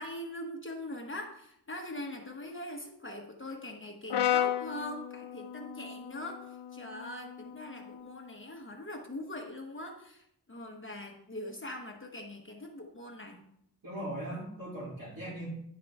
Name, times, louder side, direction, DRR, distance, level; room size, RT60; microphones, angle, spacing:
voice 1, 0.0-13.4, left 1 dB, 30° left, 1 dB, 1.0 m, -42 dB
Brass instrument, 4.1-8.3, left 10 dB, 85° left, 0.5 m, -34 dB
voice 2, 13.8-15.5, right 1 dB, 55° right, -7 dB, 2.9 m, -39 dB
10.5 x 4.7 x 3.5 m, 0.74 s
wide cardioid pair, 80°, 40 cm